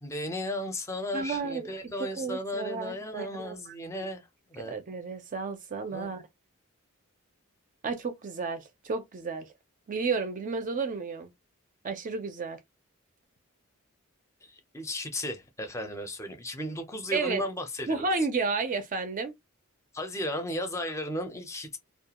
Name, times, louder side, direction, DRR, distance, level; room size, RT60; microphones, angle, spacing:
voice 1, 0.0-4.7 5.9-6.1 14.4-18.0 19.9-21.8, left 1 dB, 15° left, 0.5 m, -35 dB
voice 2, 1.1-1.7 2.1-3.6 4.6-6.2 7.8-9.5 9.9-11.3 11.8-12.6 17.1-17.4 17.9-19.3, right 4 dB, 40° right, 0.4 m, -32 dB
2.4 x 2.2 x 2.8 m
head